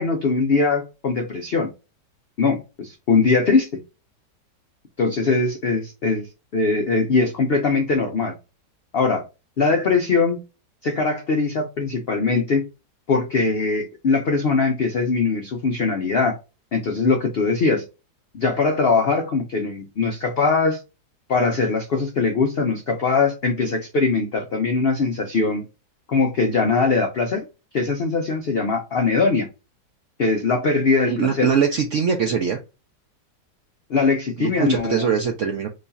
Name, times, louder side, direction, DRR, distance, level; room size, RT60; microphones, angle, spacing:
voice 1, 0.0-1.7 2.4-3.8 5.0-6.3 6.5-8.3 8.9-9.2 9.6-10.4 10.8-12.6 13.1-16.4 16.7-17.8 18.3-20.8 21.3-25.6 26.1-27.4 27.7-29.5 30.2-31.5 33.9-35.1, left 4 dB, 90° left, 0.5 m, -21 dB
voice 2, 31.1-32.6 34.4-35.7, right 6 dB, 75° right, 0.7 m, -22 dB
3.1 x 2.3 x 3.9 m
omnidirectional pair, 1.8 m